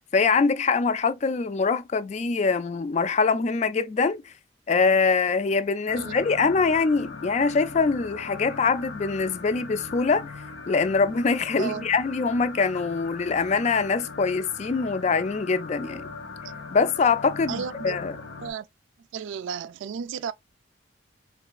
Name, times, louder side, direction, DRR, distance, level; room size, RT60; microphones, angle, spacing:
voice 1, 0.0-4.2 4.7-10.3 10.7-16.1 16.7-18.1, left 4 dB, 35° left, 0.3 m, -23 dB
sound 1, 5.9-18.5, left 4 dB, 80° left, 1.1 m, -40 dB
voice 2, 17.5-18.0 18.4-18.7 19.1-20.3, right 7 dB, 80° right, 0.3 m, -33 dB
3.8 x 3.2 x 2.2 m
head